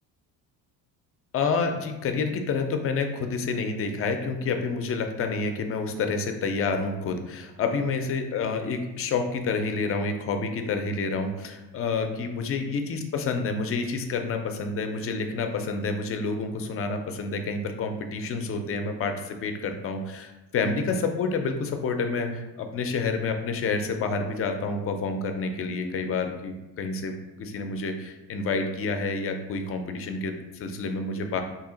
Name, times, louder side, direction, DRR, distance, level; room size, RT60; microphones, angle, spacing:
voice 1, 1.3-31.4, left 4 dB, 35° left, 6 dB, 0.4 m, -29 dB
2.8 x 2.7 x 3.8 m, 1.1 s
cardioid pair, 120°, 40 cm